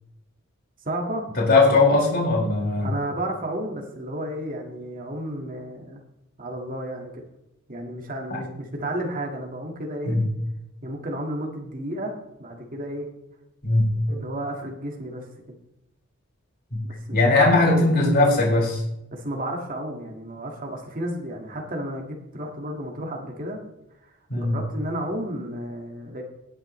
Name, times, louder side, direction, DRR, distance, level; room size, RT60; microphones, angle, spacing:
voice 1, 0.9-1.2 2.8-6.0 6.4-7.2 7.7-10.2 10.8-13.1 14.1-15.6 16.8-18.0 19.1-23.6 24.0-26.2, right 1 dB, 40° right, 0 dB, 1.8 m, -32 dB
voice 2, 1.4-2.9 8.3-8.4 10.0-10.3 13.6-14.2 16.7-16.8 17.1-18.8 24.3-24.6, left 2 dB, 50° left, -4 dB, 5.0 m, -20 dB
19.0 x 9.0 x 3.2 m, 0.87 s
head